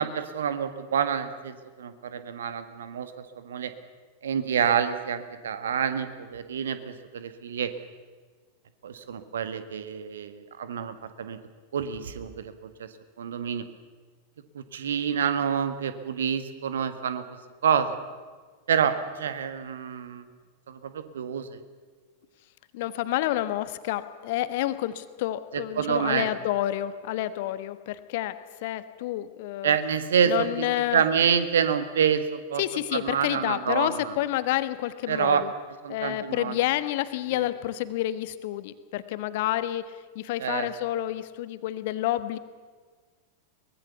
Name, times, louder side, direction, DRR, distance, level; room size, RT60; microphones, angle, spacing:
voice 1, 0.0-3.1 3.4-3.7 4.2-7.7 8.8-11.4 11.7-12.9 13.2-13.6 14.5-17.2 17.6-18.0 18.7-20.2 20.7-21.6 25.5-26.3 29.6-30.7 30.9-32.6 32.9-34.1 35.1-35.4 35.8-36.6 37.3-37.4 40.4-40.7, right 7 dB, 65° right, 11 dB, 1.7 m, -27 dB
voice 2, 22.7-29.8 30.2-31.0 32.6-35.5 35.9-39.8 40.1-42.4, left 14 dB, 50° left, 13 dB, 1.3 m, -29 dB
23.5 x 20.5 x 7.0 m, 1.5 s
figure-of-eight pair, 90°, 0 cm